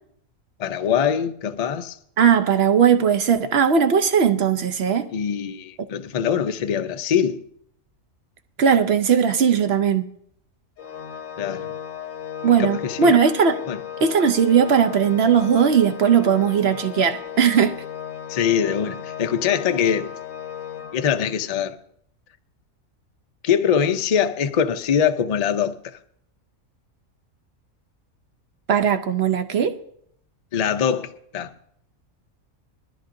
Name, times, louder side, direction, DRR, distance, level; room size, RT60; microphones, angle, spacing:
voice 1, 0.6-2.0 5.1-7.4 11.4-11.7 12.4-13.2 13.7-13.8 18.3-20.1 20.9-21.8 23.4-26.0 30.5-31.5, left 8 dB, 50° left, 0.4 m, -23 dB
voice 2, 2.2-5.1 8.6-10.1 12.4-13.7 14.0-17.8 28.7-29.8, right 7 dB, 55° right, 0.8 m, -18 dB
Organ, 10.8-21.5, left 9 dB, 75° left, 1.1 m, -35 dB
20.5 x 13.5 x 2.6 m
omnidirectional pair, 1.4 m